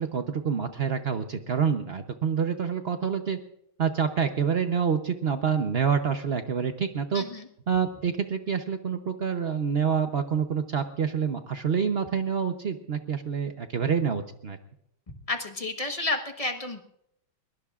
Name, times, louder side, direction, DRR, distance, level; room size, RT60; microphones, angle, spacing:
voice 1, 0.0-3.4 3.8-7.2 7.7-14.6, right 7 dB, 85° right, 7 dB, 0.5 m, -27 dB
voice 2, 7.1-7.5 15.3-16.8, left 2 dB, 25° left, 5 dB, 0.9 m, -31 dB
22.5 x 22.0 x 2.4 m, 0.77 s
omnidirectional pair, 2.3 m